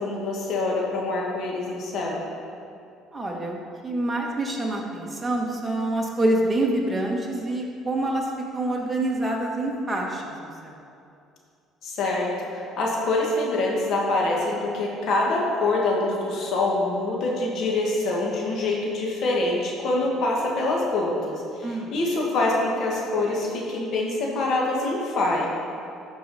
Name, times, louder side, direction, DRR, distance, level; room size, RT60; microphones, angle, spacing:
voice 1, 0.0-2.2 11.8-25.5, left 2 dB, 60° left, -2 dB, 1.7 m, -25 dB
voice 2, 3.1-3.6 3.8-8.3 8.5-10.7 21.6-21.9, right 1 dB, 15° right, -1 dB, 1.5 m, -26 dB
12.5 x 4.8 x 4.2 m, 2.5 s
supercardioid pair, 95°, 0 cm